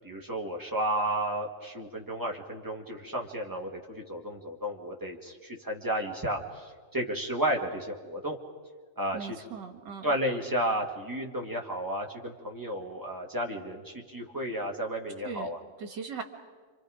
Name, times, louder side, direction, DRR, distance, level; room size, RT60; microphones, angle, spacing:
voice 1, 0.0-8.4 9.0-9.2 10.0-15.6, right 1 dB, 10° right, 0 dB, 2.1 m, -32 dB
voice 2, 9.1-10.1 15.2-15.5 15.8-16.2, right 5 dB, 65° right, 6 dB, 2.4 m, -39 dB
29.5 x 26.0 x 5.1 m, 1.5 s
omnidirectional pair, 2.0 m